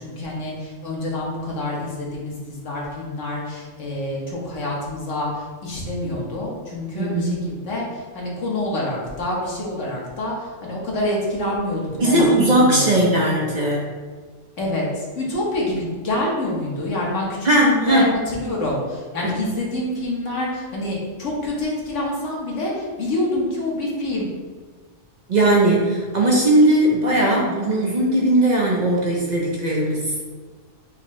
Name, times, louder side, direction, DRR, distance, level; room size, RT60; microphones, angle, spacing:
voice 1, 0.0-13.0 14.6-24.3, left 1 dB, 80° left, -3 dB, 1.5 m, -27 dB
voice 2, 6.9-7.4 12.0-13.9 17.4-18.1 19.2-19.3 25.3-30.1, right 1 dB, 45° right, -3 dB, 0.7 m, -18 dB
5.8 x 2.7 x 3.1 m, 1.4 s
omnidirectional pair, 1.2 m